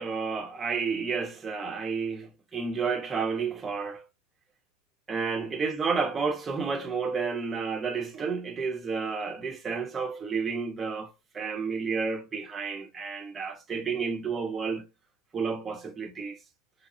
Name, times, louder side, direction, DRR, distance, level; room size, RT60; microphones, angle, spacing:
voice 1, 0.0-4.0 5.1-14.9 15.3-16.4, right 5 dB, 20° right, 0.9 m, -31 dB
4.7 x 2.0 x 2.5 m
figure-of-eight pair, 85°, 0 cm